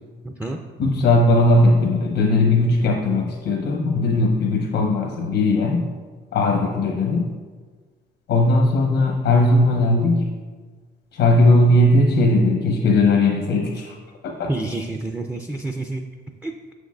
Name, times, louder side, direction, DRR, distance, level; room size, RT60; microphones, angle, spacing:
voice 1, 0.2-0.6 14.5-16.1 16.4-16.5, right 2 dB, 5° right, 3 dB, 0.4 m, -28 dB
voice 2, 0.8-5.9 6.3-7.3 8.3-10.3 11.1-13.9 14.2-14.5, left 2 dB, 80° left, 1 dB, 0.8 m, -18 dB
6.6 x 6.3 x 2.3 m, 1.4 s
cardioid pair, 90°, 20 cm